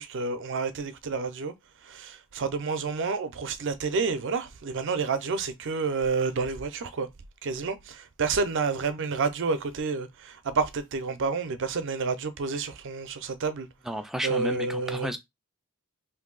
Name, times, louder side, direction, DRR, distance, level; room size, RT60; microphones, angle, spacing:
voice 1, 0.0-1.5 1.8-7.1 7.4-13.7 14.2-15.2, right 4 dB, 55° right, 0.5 m, -29 dB
voice 2, 13.9-15.2, equal, ahead, 0.3 m, -32 dB
2.6 x 2.6 x 3.8 m
head